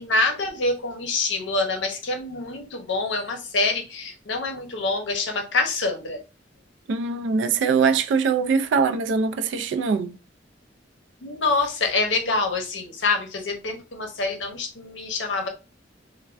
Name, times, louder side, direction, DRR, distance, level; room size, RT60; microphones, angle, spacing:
voice 1, 0.0-6.2 11.2-15.5, left 3 dB, 80° left, 0.7 m, -26 dB
voice 2, 6.9-10.2, right 5 dB, 75° right, 0.3 m, -22 dB
3.3 x 2.1 x 2.4 m
head